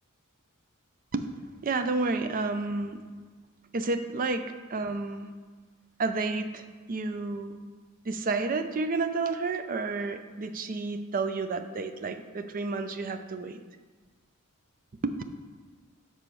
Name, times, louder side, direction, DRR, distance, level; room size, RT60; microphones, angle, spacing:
voice 1, 1.6-3.0 3.7-4.4 4.7-5.3 6.0-7.6 8.0-13.6 15.0-15.1, right 3 dB, 40° right, 8 dB, 0.4 m, -30 dB
6.9 x 4.3 x 6.1 m, 1.4 s
head